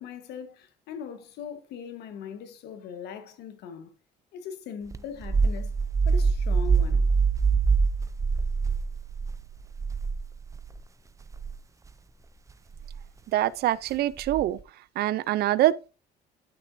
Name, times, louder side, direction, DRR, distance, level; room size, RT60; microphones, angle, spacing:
voice 1, 0.0-3.9 4.3-5.7 6.0-7.1, left 7 dB, 80° left, 1.3 m, -40 dB
sound 1, 4.9-10.8 11.2-11.6 12.7-13.0 14.2-14.6, right 5 dB, 20° right, 0.5 m, -25 dB
voice 2, 13.3-14.6 15.0-15.9, right 14 dB, 70° right, 0.5 m, -24 dB
11.5 x 6.0 x 2.6 m
cardioid pair, 110°, 17 cm